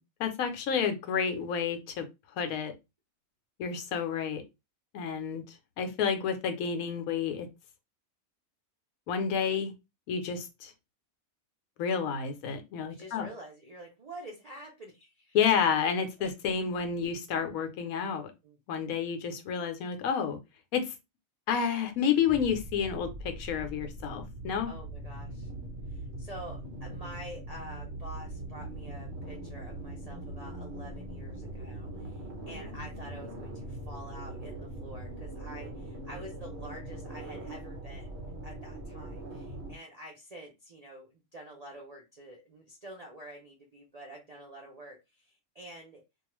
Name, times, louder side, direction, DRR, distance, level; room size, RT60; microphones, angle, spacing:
voice 1, 0.2-2.1 2.4-2.7 3.6-4.4 4.9-5.4 5.8-7.5 9.1-9.7 10.1-10.7 11.8-13.3 15.3-18.3 18.7-20.4 20.7-20.9 21.5-24.7, left 7 dB, 80° left, 1.0 m, -30 dB
voice 2, 12.9-15.4 16.2-16.3 18.4-18.9 24.7-25.5 25.9-46.0, right 1 dB, 70° right, 0.3 m, -48 dB
sound 1, 22.3-39.8, right 1 dB, 55° right, 0.9 m, -41 dB
2.5 x 2.3 x 3.0 m
omnidirectional pair, 1.5 m